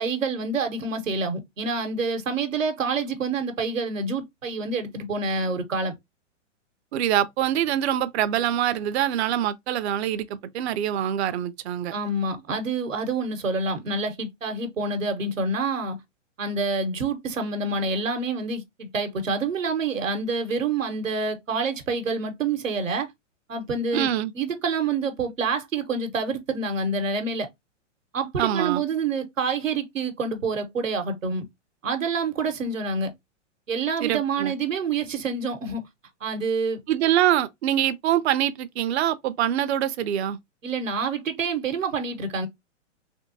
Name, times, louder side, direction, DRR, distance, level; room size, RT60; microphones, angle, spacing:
voice 1, 0.0-5.9 11.9-16.0 16.4-23.1 23.5-24.1 24.3-27.5 28.1-31.4 31.8-33.1 33.7-35.8 36.2-36.8 40.6-42.5, right 4 dB, 90° right, 1.1 m, -27 dB
voice 2, 6.9-11.9 23.9-24.3 28.4-28.8 34.0-34.5 36.9-40.4, right 11 dB, 60° right, 0.5 m, -24 dB
3.5 x 2.7 x 2.6 m
hypercardioid pair, 120°, 38 cm